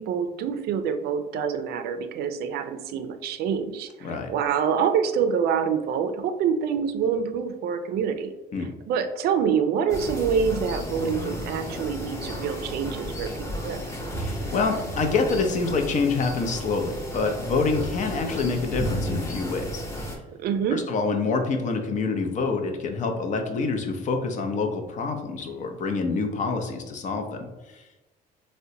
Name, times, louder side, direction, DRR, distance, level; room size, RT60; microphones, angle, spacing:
voice 1, 0.0-8.3 8.9-13.8 20.3-20.9, right 7 dB, 70° right, 9 dB, 0.4 m, -26 dB
sound 1, 9.9-20.2, equal, 20° left, 0.8 m, -33 dB
voice 2, 14.2-20.1 20.7-28.1, left 4 dB, 45° left, 5 dB, 0.6 m, -27 dB
3.7 x 2.1 x 2.7 m, 1.1 s
cardioid pair, 110°, 17 cm